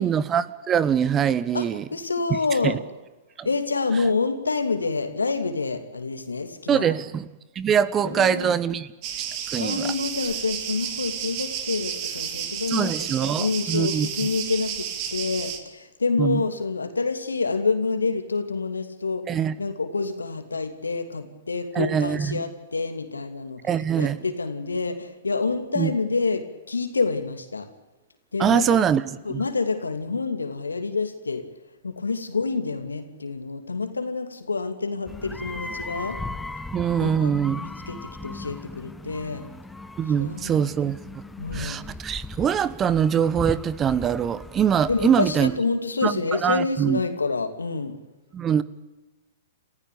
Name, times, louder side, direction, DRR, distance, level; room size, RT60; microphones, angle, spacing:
voice 1, 0.0-1.8 2.6-2.8 3.4-3.5 6.7-7.3 7.5-8.9 9.5-9.9 12.7-14.1 16.2-16.4 19.3-19.5 21.7-22.4 23.6-24.2 25.7-25.9 28.4-29.4 36.7-37.6 40.0-41.0 41.5-45.5 46.0-47.0 48.3-48.6, right 8 dB, 25° right, 1.2 m, -23 dB
voice 2, 1.5-2.8 3.4-7.0 8.0-8.8 9.6-27.7 28.3-28.8 29.2-31.4 31.8-36.2 37.0-39.4 40.2-40.7 41.4-41.8 44.9-47.9, left 4 dB, 85° left, 2.8 m, -28 dB
sound 1, 9.0-15.6, right 9 dB, 40° right, 3.1 m, -32 dB
sound 2, 35.1-45.6, left 2 dB, 5° left, 1.2 m, -38 dB
28.5 x 15.5 x 8.6 m
hypercardioid pair, 110°, 0 cm